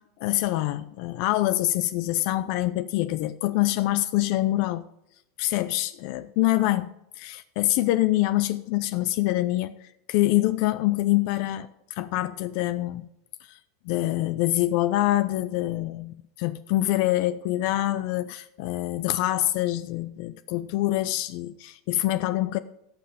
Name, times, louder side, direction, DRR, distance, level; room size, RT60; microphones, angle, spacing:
voice 1, 0.2-4.8 5.4-13.1 13.4-13.6 13.8-22.6, left 16 dB, 60° left, 12 dB, 0.5 m, -25 dB
17.0 x 5.8 x 5.0 m, 0.82 s
hypercardioid pair, 100°, 0 cm